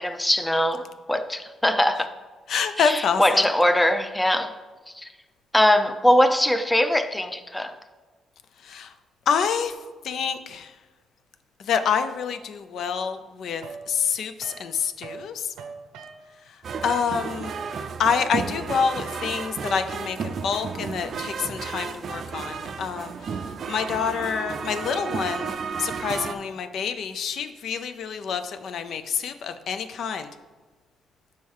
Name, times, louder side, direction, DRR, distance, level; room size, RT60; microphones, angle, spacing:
voice 1, 0.0-2.1 2.8-4.5 5.0-5.1 5.5-7.8, left 1 dB, 10° left, 0.5 m, -21 dB
voice 2, 2.5-3.4 8.6-8.9 9.3-9.7 10.0-10.7 11.6-15.5 16.8-17.5 18.0-23.1 23.7-30.3, left 6 dB, 70° left, 0.4 m, -27 dB
sound 1, 13.6-15.3 15.5-19.6, right 5 dB, 90° right, 0.7 m, -42 dB
sound 2, 16.6-26.4, right 5 dB, 55° right, 0.4 m, -33 dB
5.5 x 4.3 x 4.7 m
cardioid pair, 90°, 0 cm